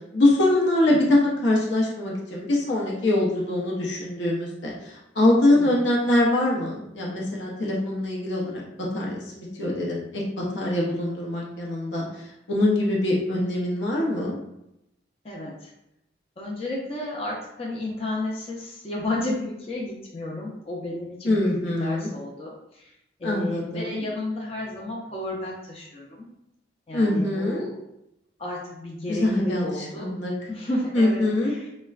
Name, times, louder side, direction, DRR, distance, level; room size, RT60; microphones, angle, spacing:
voice 1, 0.1-4.7 5.2-8.6 8.9-12.0 12.5-14.4 21.2-22.1 23.2-24.0 26.9-27.7 29.1-29.7 30.0-30.3 30.9-31.5, left 1 dB, 75° left, -3 dB, 0.6 m, -23 dB
voice 2, 0.9-1.2 5.5-5.9 15.2-15.7 16.4-22.9 23.2-26.3 26.9-27.8 28.4-30.1 30.5-31.7, left 1 dB, 30° left, -3 dB, 0.5 m, -32 dB
4.1 x 2.1 x 2.3 m, 0.83 s
head